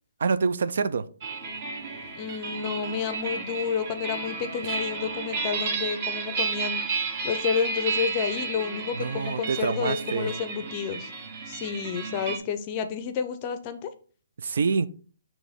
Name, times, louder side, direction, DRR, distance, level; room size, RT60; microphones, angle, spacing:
voice 1, 0.2-1.0 9.0-10.3 14.4-14.9, right 5 dB, 60° right, 0.4 m, -26 dB
sound 1, 1.2-12.4, right 4 dB, 30° right, 0.9 m, -32 dB
voice 2, 2.1-6.8 7.2-11.1 11.5-13.9, left 7 dB, 25° left, 0.5 m, -30 dB
6.2 x 3.0 x 5.1 m
hypercardioid pair, 165°, 0 cm